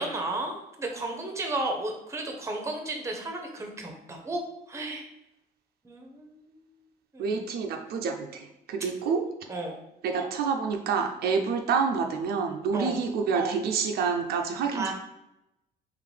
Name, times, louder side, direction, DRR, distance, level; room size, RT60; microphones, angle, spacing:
voice 1, 0.0-4.4 4.7-5.1 5.8-6.5 7.1-7.4 9.5-9.8 12.7-13.0 14.7-14.9, right 2 dB, 15° right, 2 dB, 0.8 m, -33 dB
voice 2, 7.2-9.2 10.0-14.9, right 5 dB, 65° right, 3 dB, 0.5 m, -28 dB
3.8 x 3.1 x 3.3 m, 0.88 s
cardioid pair, 110°, 17 cm